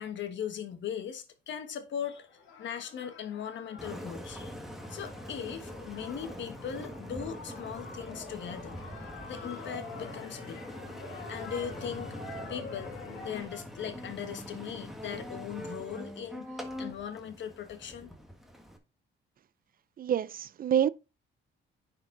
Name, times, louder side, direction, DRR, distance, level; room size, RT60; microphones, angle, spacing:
voice 1, 0.0-2.3 2.6-4.6 4.9-8.8 9.3-10.6 11.3-12.2 12.5-12.9 13.2-16.5 16.8-18.1, left 8 dB, 65° left, 1.4 m, -39 dB
sound 1, 2.1-13.4, left 5 dB, 85° left, 1.8 m, -47 dB
Engine, 3.8-18.8, equal, ahead, 1.6 m, -43 dB
voice 2, 20.0-20.9, right 9 dB, 45° right, 0.4 m, -27 dB
9.8 x 4.5 x 3.8 m
cardioid pair, 90°, 20 cm